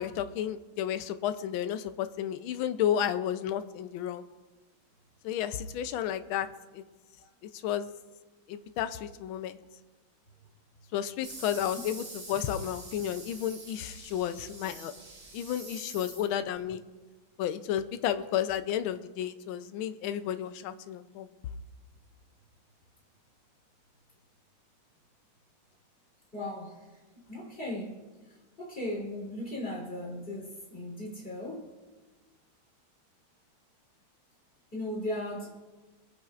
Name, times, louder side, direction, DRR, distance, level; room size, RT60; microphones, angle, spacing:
voice 1, 0.0-4.2 5.2-6.5 6.7-6.8 7.6-7.9 8.5-9.6 10.9-14.9 15.3-16.8 17.4-21.3, left 10 dB, 75° left, 10 dB, 1.4 m, -32 dB
sound 1, 11.2-16.6, right 2 dB, 80° right, 4.3 m, -46 dB
voice 2, 26.3-27.0 27.3-28.0 28.6-31.7 34.7-35.6, left 1 dB, 25° left, -3 dB, 3.6 m, -37 dB
25.5 x 9.1 x 2.5 m, 1.3 s
omnidirectional pair, 2.3 m